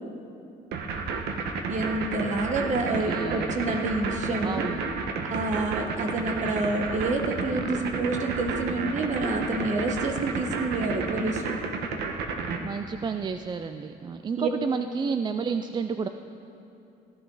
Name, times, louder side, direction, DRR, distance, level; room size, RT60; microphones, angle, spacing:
sound 1, 0.7-12.6, right 5 dB, 75° right, 1.1 m, -31 dB
voice 1, 1.7-4.7 5.3-11.6 14.4-14.5, right 2 dB, 45° right, 4 dB, 1.3 m, -28 dB
voice 2, 3.0-3.8 4.4-4.8 12.6-16.1, right 5 dB, 25° right, 8 dB, 0.4 m, -31 dB
15.5 x 11.0 x 4.0 m, 2.7 s
cardioid pair, 110°, 17 cm